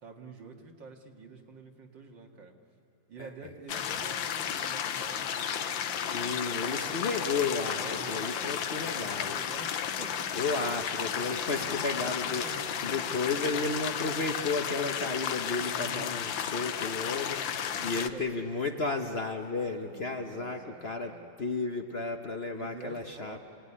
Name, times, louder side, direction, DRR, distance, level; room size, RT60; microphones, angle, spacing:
voice 1, 0.0-2.6 3.1-6.2 6.5-7.2 7.7-8.3 8.7-10.4 11.4-11.5 12.2-12.5 13.3-13.8 14.4-14.5 15.7-16.2 17.7-18.4 19.8-21.3 22.5-23.4, right 4 dB, 70° right, 2 dB, 2.6 m, -48 dB
sound 1, 3.7-18.1, left 9 dB, 85° left, 1.6 m, -33 dB
sound 2, 5.8-12.8, equal, 25° right, 6.0 m, -49 dB
voice 2, 5.9-9.4 10.3-12.4 12.8-23.4, left 3 dB, 40° left, 4 dB, 1.0 m, -33 dB
29.0 x 18.5 x 9.9 m, 2.8 s
omnidirectional pair, 2.0 m